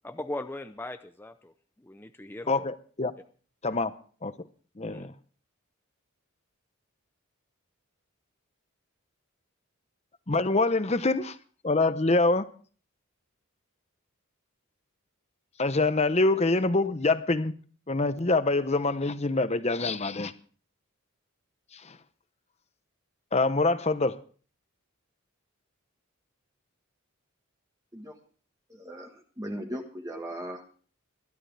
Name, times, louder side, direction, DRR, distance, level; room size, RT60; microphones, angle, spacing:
voice 1, 0.0-1.5 1.8-2.7 3.7-3.8 4.9-5.1, left 1 dB, 10° left, 0.5 m, -39 dB
voice 2, 2.5-3.1 3.6-3.9 4.2-4.3 4.8-5.1 10.3-11.4 11.6-12.4 15.6-17.5 17.9-20.3 21.7-22.0 23.3-24.2, left 3 dB, 30° left, 0.9 m, -25 dB
voice 3, 28.7-30.6, equal, 15° right, 1.5 m, -38 dB
22.0 x 12.0 x 3.4 m
head